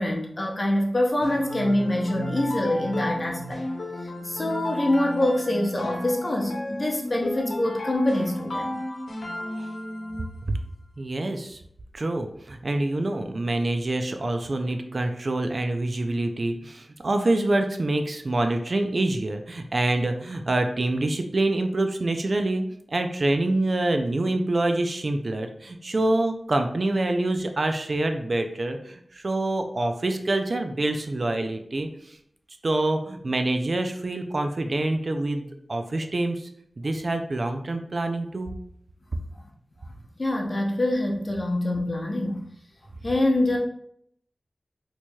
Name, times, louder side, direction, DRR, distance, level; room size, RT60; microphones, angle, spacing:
voice 1, 0.0-3.6 4.2-8.8 40.2-42.4 43.0-43.6, left 1 dB, 35° left, 0 dB, 0.7 m, -25 dB
sound 1, 1.2-10.4, left 1 dB, 85° left, 0.9 m, -33 dB
voice 2, 11.0-11.6 11.9-22.6 22.9-32.2 32.6-36.5 36.8-38.5, right 2 dB, 50° right, 6 dB, 0.3 m, -26 dB
4.5 x 2.8 x 2.3 m, 0.71 s
wide cardioid pair, 90°, 0 cm